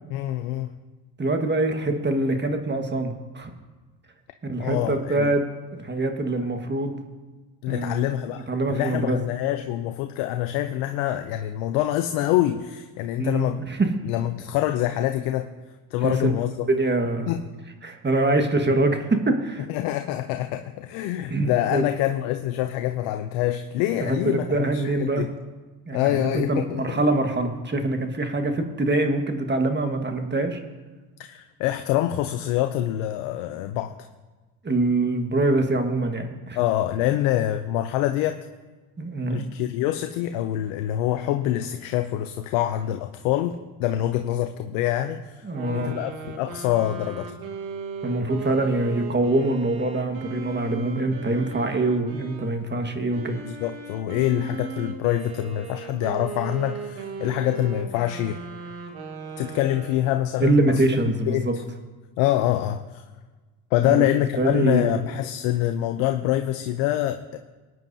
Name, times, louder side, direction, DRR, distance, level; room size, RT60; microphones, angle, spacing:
voice 1, 0.1-0.7 4.6-5.3 7.6-13.6 14.0-15.5 15.9-16.7 17.3-17.5 19.7-25.3 25.9-27.0 31.2-33.9 36.6-38.4 39.3-47.3 53.5-58.4 59.4-60.8 61.3-61.5 62.2-63.0 63.7-67.4, left 13 dB, 80° left, 8 dB, 0.7 m, -25 dB
voice 2, 1.2-3.5 4.5-5.5 5.7-7.0 7.7-8.1 8.5-9.2 13.2-13.9 16.0-16.3 16.7-17.3 17.8-19.7 21.3-21.8 24.0-25.3 25.9-30.6 34.6-36.6 39.0-39.4 45.4-45.9 48.0-53.4 60.4-61.5 63.8-64.1 64.4-64.9, right 2 dB, 25° right, 5 dB, 1.5 m, -24 dB
sound 1, 45.5-52.5 53.1-60.3, right 5 dB, 80° right, 1.6 m, -37 dB
19.0 x 9.2 x 2.7 m, 1.3 s
supercardioid pair, 65°, 46 cm